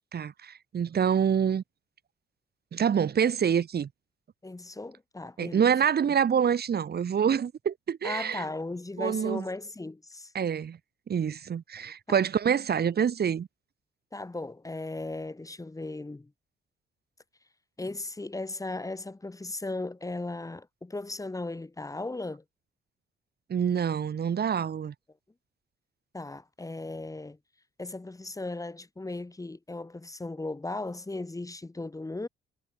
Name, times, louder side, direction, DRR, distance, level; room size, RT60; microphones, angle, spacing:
voice 1, 0.1-1.6 2.7-3.9 5.4-8.4 9.0-9.4 10.3-10.8 11.1-13.5 23.5-24.9, right 8 dB, 55° right, 7.4 m, -26 dB
voice 2, 4.4-5.6 8.0-10.3 12.1-12.2 14.1-16.3 17.8-22.4 26.1-27.4 27.8-32.3, left 2 dB, 15° left, 5.5 m, -37 dB
cardioid pair, 90°, 20 cm